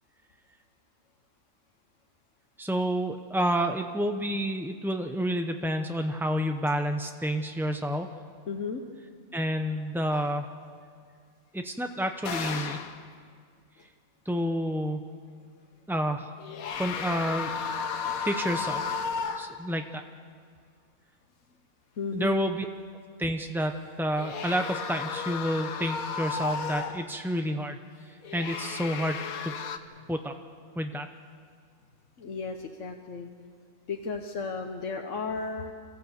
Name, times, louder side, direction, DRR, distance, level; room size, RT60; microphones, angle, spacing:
voice 1, 2.6-8.1 9.3-10.5 11.5-12.8 14.3-15.1 15.9-16.3 16.8-17.5 18.2-19.0 19.4-20.0 22.1-22.7 23.2-27.8 28.1-29.5 30.1-30.3 30.8-31.1, equal, 5° right, 5 dB, 0.3 m, -29 dB
voice 2, 8.5-8.8 22.0-22.4 32.2-33.3 33.9-35.7, left 4 dB, 60° left, 3 dB, 1.3 m, -34 dB
sound 1, 10.1-10.4 12.2-13.0 16.4-19.7 24.1-27.1 28.2-29.8, left 6 dB, 75° left, 1.4 m, -34 dB
27.0 x 15.0 x 8.1 m, 2.1 s
omnidirectional pair, 1.5 m